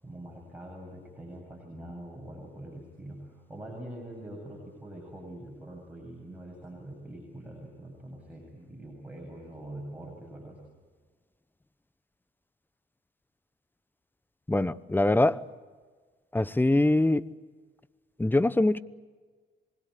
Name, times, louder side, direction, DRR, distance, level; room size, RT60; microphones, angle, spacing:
voice 1, 0.0-10.6, right 1 dB, 5° right, -2 dB, 7.9 m, -44 dB
voice 2, 14.5-15.4 16.3-17.2 18.2-18.8, left 2 dB, 10° left, 16 dB, 0.9 m, -23 dB
26.5 x 20.5 x 8.4 m, 1.4 s
cardioid pair, 90°, 20 cm